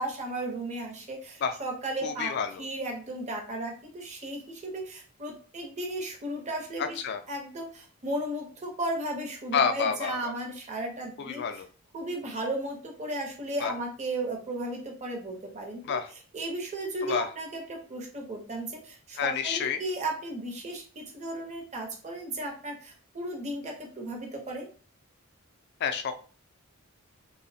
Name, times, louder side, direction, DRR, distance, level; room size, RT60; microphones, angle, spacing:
voice 1, 0.0-2.3 2.6-7.0 7.3-11.4 11.9-16.0 16.3-24.7, right 1 dB, 30° right, 1 dB, 0.6 m, -35 dB
voice 2, 2.0-2.6 6.8-7.2 9.5-10.3 11.2-11.6 13.6-13.7 15.8-16.1 17.0-17.3 19.2-19.8 25.8-26.1, left 6 dB, 50° left, 7 dB, 0.3 m, -29 dB
3.0 x 2.0 x 2.6 m, 0.39 s
head